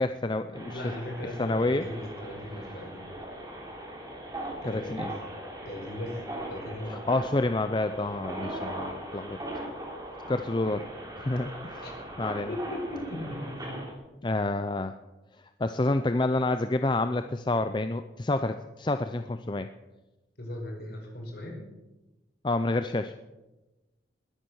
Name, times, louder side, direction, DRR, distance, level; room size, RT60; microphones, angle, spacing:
voice 1, 0.0-0.8 1.4-1.9 4.7-5.1 6.9-9.4 10.3-10.9 11.2-11.8 12.2-12.5 14.2-14.9 15.6-19.7 22.4-23.1, left 2 dB, 25° left, 9 dB, 0.5 m, -28 dB
sound 1, 0.5-13.9, right 1 dB, 20° right, 3.4 m, -39 dB
voice 2, 0.7-3.1 4.6-5.1 5.6-6.2 6.5-6.9 11.8-11.9 12.5-13.7 20.4-21.6, left 1 dB, 55° left, 0 dB, 5.2 m, -38 dB
21.0 x 10.0 x 6.4 m, 1.1 s
head